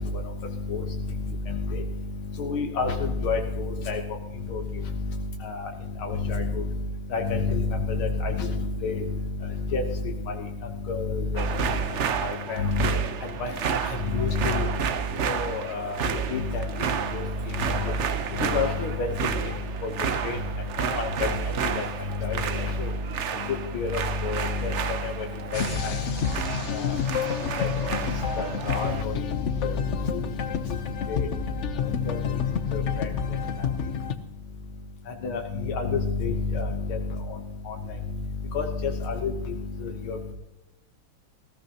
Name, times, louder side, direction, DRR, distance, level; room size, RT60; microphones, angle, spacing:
voice 1, 1.5-1.8 2.4-4.0 4.5-4.6 5.4-5.7 6.0-6.4 7.1-8.5 8.8-9.0 9.7-9.8 10.9-11.4 12.2-12.9 13.4-13.5 14.1-14.7 15.2-16.0 16.3-16.6 17.1-17.2 17.8-17.9 18.4-19.1 19.8-19.9 20.2-20.4 20.8-21.1 21.8-21.9 22.2-22.9 23.7-24.7 25.0-25.1 25.5-26.0 26.7-27.0 27.6-27.7 28.4-29.1 29.6-29.7 31.1-31.3 32.0-32.2 32.7-33.1 35.2-35.4 35.7-37.0 37.7-37.8 38.5-39.3 39.8-40.3, left 4 dB, 85° left, 2 dB, 2.0 m, -28 dB
sound 1, 11.4-29.0, right 7 dB, 85° right, 0.6 m, -31 dB
sound 2, 25.5-34.1, left 7 dB, 60° left, 0.7 m, -29 dB
19.0 x 14.5 x 2.9 m, 0.97 s
omnidirectional pair, 2.2 m